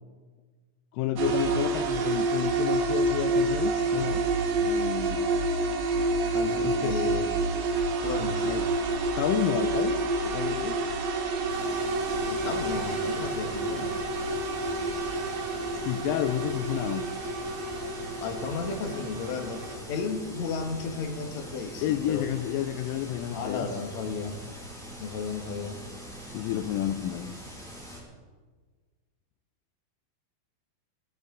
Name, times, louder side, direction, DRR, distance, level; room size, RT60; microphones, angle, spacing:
voice 1, 0.9-4.3 4.6-5.3 6.6-7.0 8.4-8.7 9.2-10.8 15.8-17.1 21.8-23.7 26.3-27.4, left 11 dB, 80° left, 8 dB, 2.0 m, -30 dB
sound 1, 1.2-19.8, right 3 dB, 65° right, 2.7 m, -28 dB
voice 2, 6.3-7.4 8.0-8.6 12.2-14.0 18.2-22.2 23.3-24.4 25.0-25.8, left 5 dB, 60° left, 4 dB, 2.2 m, -34 dB
sound 2, 11.5-28.0, right 1 dB, ahead, 4.5 m, -43 dB
18.0 x 15.5 x 3.8 m, 1.4 s
omnidirectional pair, 4.4 m